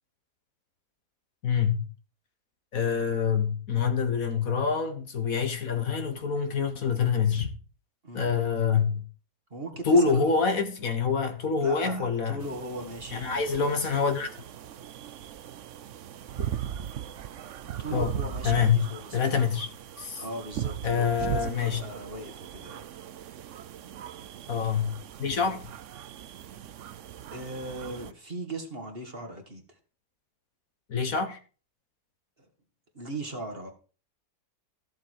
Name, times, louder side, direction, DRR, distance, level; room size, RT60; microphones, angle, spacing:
voice 1, 1.4-1.9 2.7-7.5 8.1-9.1 9.9-12.4 13.1-14.3 17.9-18.1 18.4-18.9 19.1-19.7 20.0-20.2 20.8-21.8 24.5-24.9 25.2-25.6 30.9-31.4, left 6 dB, 60° left, 1.8 m, -26 dB
voice 2, 9.5-10.3 11.6-13.9 17.8-19.4 20.2-22.9 27.3-29.8 32.9-33.7, right 2 dB, 35° right, 2.2 m, -38 dB
sound 1, 12.4-28.1, right 10 dB, 60° right, 0.9 m, -39 dB
14.5 x 7.7 x 4.8 m
omnidirectional pair, 1.7 m